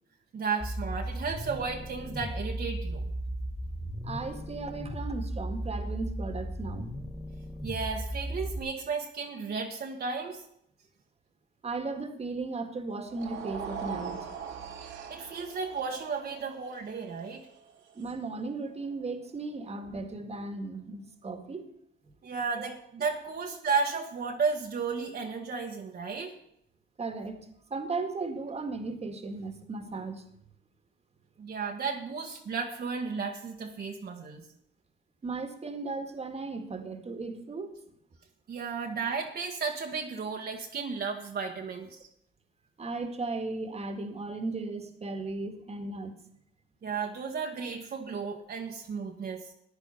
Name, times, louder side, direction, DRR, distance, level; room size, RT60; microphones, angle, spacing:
voice 1, 0.3-3.1 7.6-10.4 15.1-17.5 22.2-26.3 31.4-34.5 38.5-42.1 46.8-49.5, right 5 dB, 50° right, 1 dB, 1.5 m, -33 dB
sound 1, 0.6-8.6, right 1 dB, ahead, 2.1 m, -36 dB
voice 2, 4.0-6.9 11.6-14.3 18.0-21.7 27.0-30.2 35.2-37.8 42.8-46.1, right 3 dB, 30° right, 7 dB, 1.8 m, -36 dB
sound 2, 13.0-19.3, right 7 dB, 80° right, 2.5 m, -42 dB
14.0 x 9.7 x 5.6 m, 0.74 s
cardioid pair, 90°, 20 cm